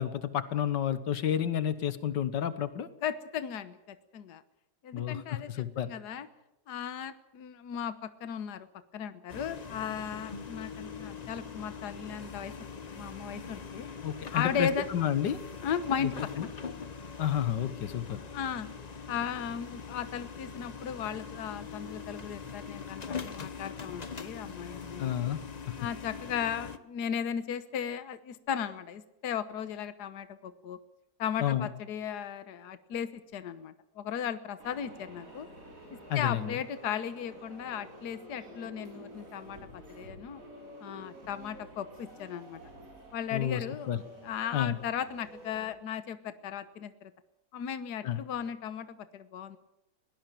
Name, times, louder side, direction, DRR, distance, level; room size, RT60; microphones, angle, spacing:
voice 1, 0.0-2.9 4.9-5.2 5.5-5.9 14.0-15.4 16.4-16.5 17.2-18.2 25.0-25.4 25.7-25.8 31.4-31.7 36.1-36.5 43.3-44.0 44.5-44.8 48.0-48.2, left 10 dB, 85° left, 13 dB, 1.8 m, -30 dB
voice 2, 3.0-4.4 4.8-6.3 6.7-8.7 8.9-12.5 12.9-13.9 14.3-14.8 15.6-16.3 18.3-18.7 19.1-25.3 25.8-30.8 31.2-35.5 35.9-40.4 40.8-42.6 43.1-43.9 44.2-47.1 47.5-49.6, left 8 dB, 70° left, 12 dB, 1.6 m, -36 dB
sound 1, 9.3-26.8, left 5 dB, 30° left, 0.8 m, -42 dB
sound 2, 34.6-45.7, equal, 50° right, 6.8 m, -50 dB
21.5 x 18.0 x 7.6 m, 0.92 s
omnidirectional pair, 1.8 m